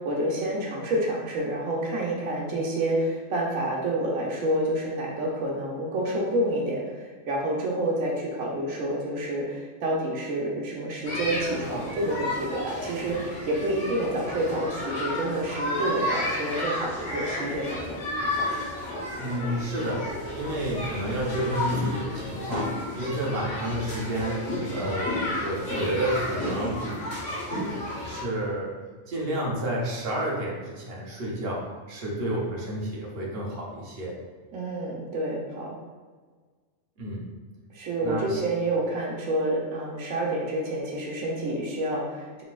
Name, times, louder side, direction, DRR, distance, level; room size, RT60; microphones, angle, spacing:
voice 1, 0.0-17.8 34.5-35.7 37.7-42.4, right 1 dB, 80° right, -2 dB, 1.1 m, -28 dB
sound 1, 11.0-28.2, left 1 dB, 65° left, 1.3 m, -32 dB
voice 2, 19.2-20.1 20.3-26.8 28.0-28.7 29.1-34.2 37.0-37.3 38.0-38.4, right 1 dB, 50° right, -4 dB, 1.0 m, -30 dB
4.2 x 4.0 x 2.4 m, 1.5 s
omnidirectional pair, 1.4 m